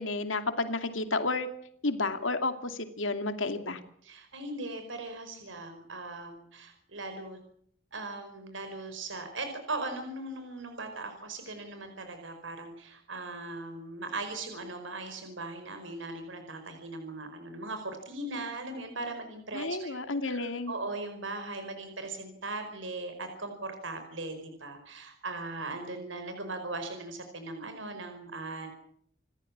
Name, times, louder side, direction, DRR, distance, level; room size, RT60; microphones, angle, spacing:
voice 1, 0.0-1.5 1.8-3.8 19.5-20.7, left 3 dB, 90° left, 8 dB, 2.5 m, -31 dB
voice 2, 4.0-7.4 7.9-20.0 20.2-28.7, right 2 dB, 85° right, 7 dB, 5.0 m, -39 dB
29.0 x 15.0 x 8.7 m, 0.67 s
head